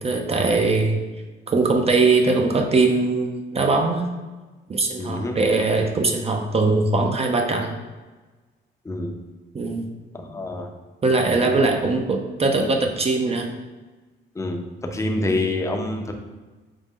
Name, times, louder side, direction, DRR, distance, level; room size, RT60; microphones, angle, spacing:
voice 1, 0.0-1.0 1.5-4.1 4.7-7.7 9.5-9.8 11.0-13.5, right 3 dB, 30° right, 3 dB, 0.5 m, -21 dB
voice 2, 5.0-5.4 8.8-9.2 10.1-10.7 11.4-11.7 14.3-16.1, left 2 dB, 15° left, 2 dB, 0.6 m, -27 dB
5.1 x 2.1 x 3.6 m, 1.2 s
cardioid pair, 90°, 20 cm